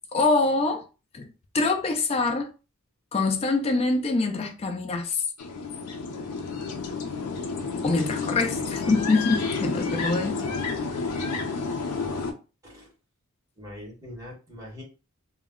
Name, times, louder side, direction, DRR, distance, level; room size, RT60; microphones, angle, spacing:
voice 1, 0.1-0.8 1.1-1.3 1.5-2.5 3.1-5.2 7.8-10.5, left 3 dB, 25° left, 0.3 m, -24 dB
sound 1, 5.4-12.3, left 4 dB, 90° left, 0.5 m, -30 dB
voice 2, 13.6-14.8, left 1 dB, 15° right, 1.0 m, -42 dB
2.1 x 2.1 x 3.6 m
head